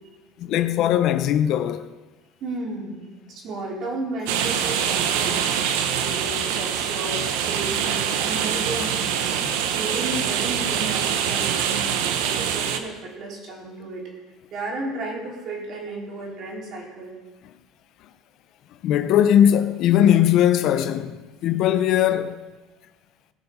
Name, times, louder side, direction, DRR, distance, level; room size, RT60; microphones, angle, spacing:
voice 1, 0.4-1.9 9.4-9.5 18.8-22.5, left 10 dB, 55° left, 0.7 m, -19 dB
voice 2, 2.4-5.4 5.9-9.3 9.7-14.0 14.5-17.1, right 2 dB, 50° right, 4.3 m, -33 dB
sound 1, 4.3-12.8, right 8 dB, 90° right, 1.1 m, -24 dB
19.5 x 7.0 x 5.6 m
cardioid pair, 130°, 0 cm